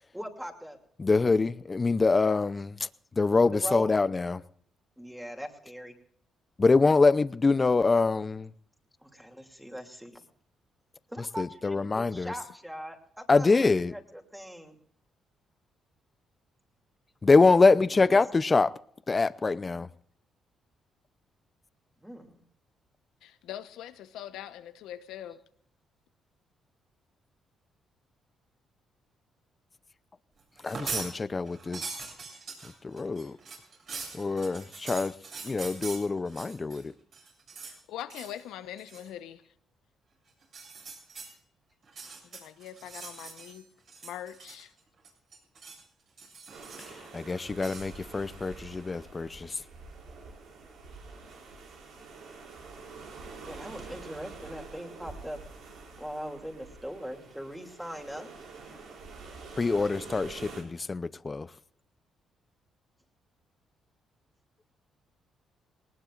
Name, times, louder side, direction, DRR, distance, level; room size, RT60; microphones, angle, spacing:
voice 1, 0.1-0.8 3.4-3.9 5.0-5.9 9.0-10.2 11.1-14.8 17.6-18.1 22.0-22.4 53.4-55.4 56.0-58.3, equal, 5° right, 2.8 m, -41 dB
voice 2, 1.0-2.7 3.2-4.4 6.6-8.5 11.4-12.3 13.3-13.9 17.2-18.7 19.1-19.9 30.6-31.8 32.8-33.4 34.1-35.1 35.4-36.9 47.1-49.6 59.6-61.5, left 3 dB, 30° left, 0.6 m, -24 dB
voice 3, 23.2-25.4 37.7-39.4 42.2-43.7 44.0-44.7, left 11 dB, 90° left, 1.0 m, -42 dB
sound 1, 30.6-31.1 31.5-36.8 37.1-37.8 38.1-38.4 38.8-39.1 40.4-41.3 41.8-43.6 43.9-44.8 45.0-45.8 46.2-47.1 47.6-47.9, right 4 dB, 60° right, 7.6 m, -42 dB
sound 2, 46.5-60.6, right 4 dB, 85° right, 5.4 m, -47 dB
20.0 x 19.5 x 2.5 m
cardioid pair, 90°, 0 cm